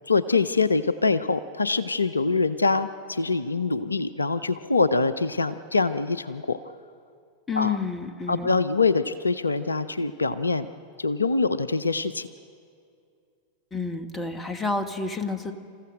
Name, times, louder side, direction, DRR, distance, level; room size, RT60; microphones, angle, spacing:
voice 1, 0.1-6.6 7.6-7.8 8.3-10.7 11.0-12.3, left 3 dB, 80° left, 15 dB, 0.5 m, -24 dB
voice 2, 7.5-8.5 13.7-15.5, left 4 dB, 15° left, 8 dB, 1.4 m, -29 dB
28.5 x 15.0 x 6.3 m, 2.4 s
figure-of-eight pair, 90°, 0 cm